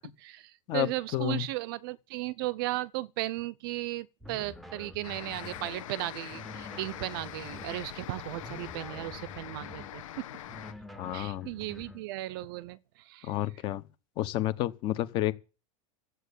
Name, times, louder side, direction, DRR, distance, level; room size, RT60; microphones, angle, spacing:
voice 1, 0.2-10.3 11.1-13.3, right 17 dB, 40° right, 0.6 m, -36 dB
voice 2, 0.7-1.5 10.9-11.5 13.2-13.8 14.2-15.3, left 14 dB, 30° left, 0.9 m, -30 dB
sound 1, 4.2-5.8 6.3-7.9 8.4-10.0 10.5-12.1, left 2 dB, ahead, 0.8 m, -47 dB
sound 2, 5.0-10.7, left 12 dB, 70° left, 1.6 m, -43 dB
14.5 x 8.1 x 8.3 m
supercardioid pair, 175°, 17 cm